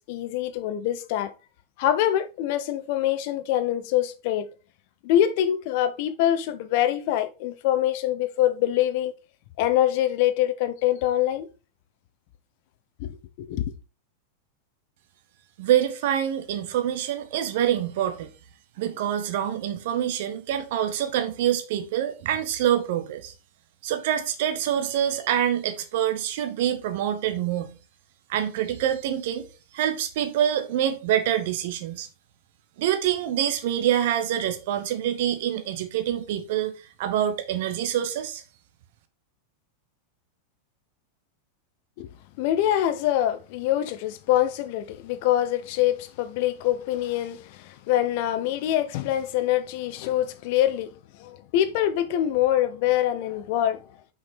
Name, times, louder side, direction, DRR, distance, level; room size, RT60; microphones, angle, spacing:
voice 1, 0.1-1.3 1.8-4.5 5.0-9.1 9.6-11.5 13.0-13.7 42.0-42.1 42.4-50.9 51.2-53.8, left 12 dB, 50° left, 0.8 m, -24 dB
voice 2, 15.6-18.3 18.8-23.3 23.8-27.8 28.3-29.4 29.7-32.1 32.8-36.7 37.0-38.4, right 10 dB, 50° right, 0.9 m, -26 dB
5.8 x 5.1 x 4.1 m
figure-of-eight pair, 90°, 0 cm